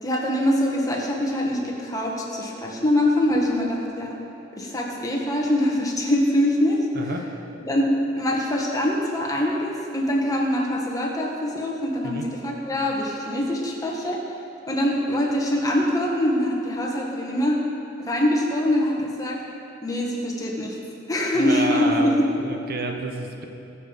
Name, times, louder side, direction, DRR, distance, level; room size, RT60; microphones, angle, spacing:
voice 1, 0.0-4.2 4.6-6.9 7.7-14.2 14.7-17.6 18.1-19.4 19.8-20.8 21.1-22.3, left 1 dB, 20° left, -2 dB, 1.7 m, -23 dB
voice 2, 6.9-7.3 12.0-12.2 21.3-23.4, right 2 dB, 50° right, 3 dB, 1.1 m, -29 dB
21.0 x 7.2 x 5.3 m, 2.7 s
head